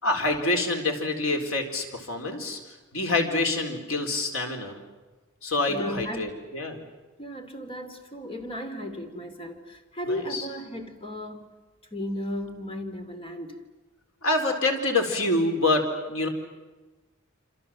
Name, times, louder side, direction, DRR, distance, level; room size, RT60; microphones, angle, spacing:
voice 1, 0.0-2.6 2.9-4.8 5.4-6.8 10.0-10.4 14.2-16.3, left 2 dB, 70° left, 4.3 m, -26 dB
voice 2, 5.7-6.3 7.2-11.4 11.9-13.6, left 1 dB, 25° left, 2.9 m, -35 dB
27.5 x 26.5 x 7.7 m
head